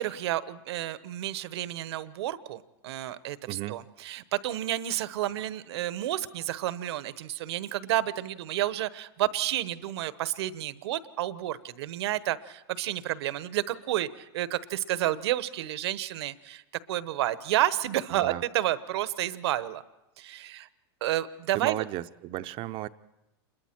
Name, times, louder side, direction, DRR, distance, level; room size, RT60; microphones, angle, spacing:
voice 1, 0.0-16.6 16.9-19.8 20.2-20.7 21.0-21.8, right 13 dB, 70° right, 1.0 m, -30 dB
voice 2, 3.5-3.8 18.2-18.4 21.5-22.9, right 16 dB, 40° right, 0.7 m, -34 dB
28.0 x 22.0 x 4.5 m
supercardioid pair, 130°, 14 cm